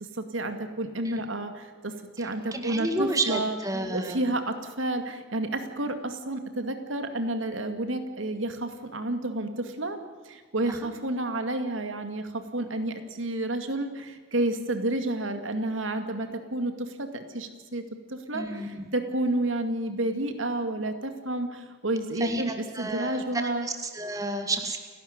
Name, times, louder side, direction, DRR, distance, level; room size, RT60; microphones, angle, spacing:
voice 1, 0.1-1.9 2.2-3.6 3.9-10.0 10.3-17.8 18.1-23.7, right 1 dB, 75° right, 7 dB, 2.2 m, -30 dB
voice 2, 2.2-4.3 10.7-10.8 18.3-18.8 22.2-24.8, right 2 dB, 15° right, 5 dB, 1.9 m, -31 dB
29.5 x 12.0 x 9.7 m, 1.5 s
head